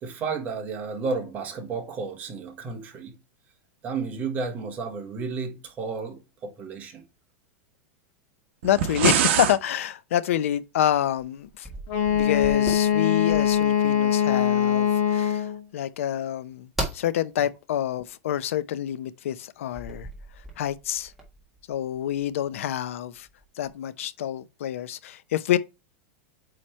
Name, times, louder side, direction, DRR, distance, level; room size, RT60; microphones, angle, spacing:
voice 1, 0.0-3.2 3.8-7.0, right 4 dB, 25° right, 1.3 m, -32 dB
voice 2, 8.6-11.7 12.1-20.1 20.6-21.1 21.7-23.3 23.5-25.6, left 11 dB, 80° left, 0.6 m, -27 dB
sound 1, 8.6-9.6, right 9 dB, 60° right, 1.1 m, -23 dB
sound 2, 11.4-13.6 16.7-17.1 19.7-22.6 23.2-23.7, right 1 dB, 5° right, 1.5 m, -37 dB
Wind instrument woodwind instrument, 11.9-15.6, left 9 dB, 40° left, 1.4 m, -22 dB
8.4 x 3.2 x 4.4 m
supercardioid pair, 170°, 7 cm